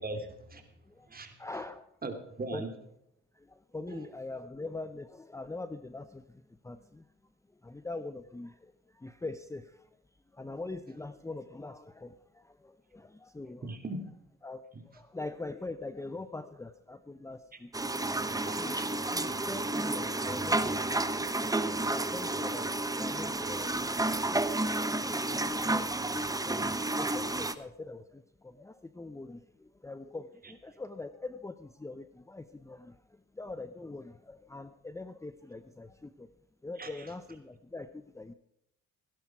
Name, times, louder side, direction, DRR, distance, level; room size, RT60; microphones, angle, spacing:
voice 1, 0.0-0.7 1.1-1.3 2.0-2.1 2.4-2.7 3.9-4.0 13.6-14.0 18.4-19.1 36.8-36.9, right 2 dB, 30° right, 5 dB, 2.9 m, -39 dB
voice 2, 1.4-1.9 2.5-2.6 3.3-7.1 7.6-10.0 10.3-13.7 14.4-21.1 21.7-24.0 24.3-26.7 27.0-36.3 36.6-38.3, left 2 dB, 10° left, 11 dB, 0.7 m, -43 dB
sound 1, 17.7-27.5, right 2 dB, 10° right, 1.0 m, -31 dB
17.0 x 11.0 x 4.7 m, 0.78 s
cardioid pair, 90°, 30 cm